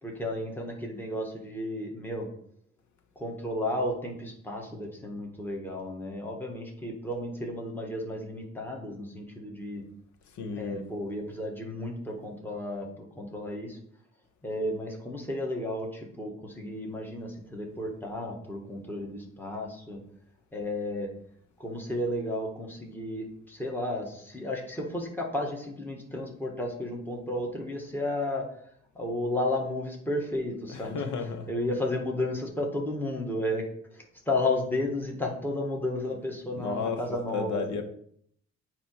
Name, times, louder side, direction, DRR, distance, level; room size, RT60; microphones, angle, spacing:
voice 1, 0.0-2.3 3.2-9.8 10.5-13.8 14.4-20.0 20.5-21.1 21.6-28.5 28.9-31.0 31.5-33.6 33.9-37.6, left 1 dB, 5° left, 0 dB, 1.7 m, -33 dB
voice 2, 10.3-10.8 30.7-31.5 36.5-37.0 37.3-37.8, left 5 dB, 70° left, 7 dB, 1.1 m, -33 dB
9.1 x 3.0 x 4.7 m, 0.66 s
cardioid pair, 90°, 30 cm